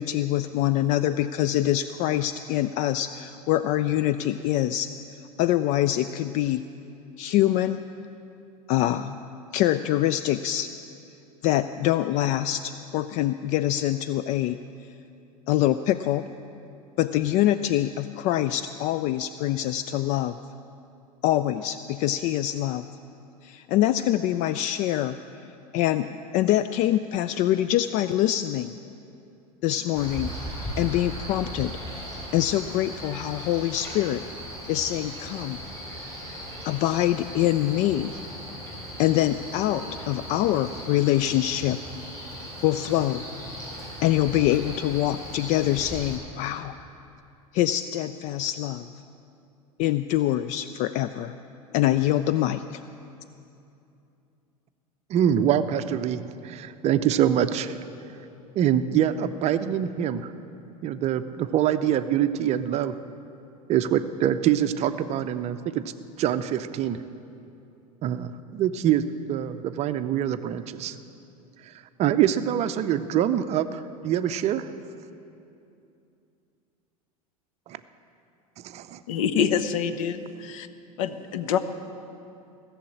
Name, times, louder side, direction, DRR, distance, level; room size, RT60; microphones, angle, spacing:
voice 1, 0.0-4.9 5.4-6.6 7.2-7.8 8.7-9.2 9.5-10.7 11.4-14.6 15.5-16.3 17.0-20.4 21.2-22.9 23.4-25.2 25.7-28.7 29.6-30.3 30.8-31.8 32.3-34.2 34.7-35.6 36.7-38.2 39.0-41.8 42.6-43.3 44.0-46.7 47.5-48.9 49.8-51.3 51.7-52.8, left 13 dB, 40° left, 12 dB, 0.4 m, -24 dB
Male speech man speaking, 30.0-46.2, equal, 15° left, 3.9 m, -38 dB
voice 2, 55.1-57.8 58.6-60.3 60.8-62.9 63.7-65.9 66.2-67.0 68.0-69.0 69.3-71.0 72.0-74.7 77.7-77.8 78.6-79.0, right 10 dB, 35° right, 11 dB, 0.6 m, -25 dB
voice 3, 79.1-80.7 81.0-81.6, left 7 dB, 60° left, 11 dB, 0.8 m, -26 dB
17.0 x 7.1 x 8.6 m, 2.7 s
figure-of-eight pair, 80°, 19 cm